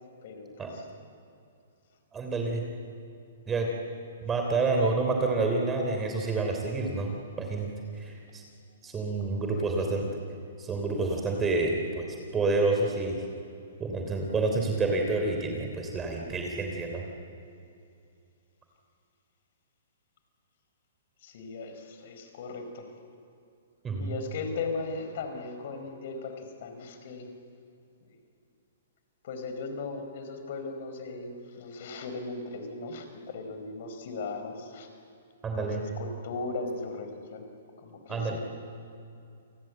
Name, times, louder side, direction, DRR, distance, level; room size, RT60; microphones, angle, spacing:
voice 1, 0.2-0.8 9.3-9.6 21.2-22.9 24.0-27.3 29.2-34.9 35.5-37.4 37.8-38.4, left 3 dB, 55° left, 7 dB, 4.7 m, -38 dB
voice 2, 2.1-2.6 3.5-3.7 4.2-7.7 8.0-8.4 8.8-10.1 10.6-12.1 12.3-13.2 13.8-17.0 23.8-24.2 35.4-35.8 38.1-38.4, right 3 dB, 15° right, 2 dB, 3.2 m, -28 dB
29.0 x 20.5 x 7.7 m, 2.5 s
hypercardioid pair, 130°, 0 cm